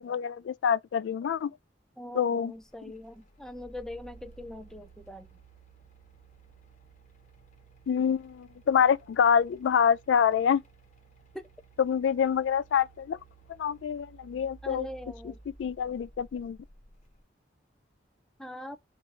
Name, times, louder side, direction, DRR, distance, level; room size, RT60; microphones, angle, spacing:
voice 1, 0.0-1.5 2.1-2.5 7.9-10.6 11.8-13.2 13.6-14.9 15.6-16.6, left 7 dB, 85° left, 0.3 m, -26 dB
voice 2, 2.0-5.3 11.3-11.5 14.6-15.4 18.4-18.8, left 1 dB, 5° left, 0.5 m, -42 dB
sound 1, 2.5-17.2, right 3 dB, 40° left, 1.1 m, -55 dB
4.4 x 2.6 x 3.7 m
head